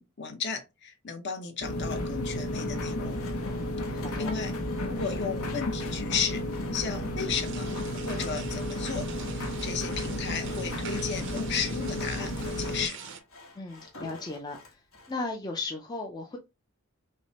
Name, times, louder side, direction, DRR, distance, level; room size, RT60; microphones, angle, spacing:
voice 1, 0.0-3.2 3.9-4.5 4.8-6.4 6.7-7.7 8.0-9.1 9.4-13.0, left 6 dB, 50° left, 0.9 m, -34 dB
sound 1, 1.6-12.9, left 1 dB, 85° left, 0.8 m, -33 dB
Sawing, 2.7-15.2, left 2 dB, 70° left, 1.4 m, -49 dB
voice 2, 3.6-4.3 13.5-14.8 15.1-16.4, left 3 dB, 20° left, 0.4 m, -36 dB
sound 2, 7.3-13.2, right 8 dB, 55° right, 0.5 m, -45 dB
5.9 x 2.1 x 2.8 m
head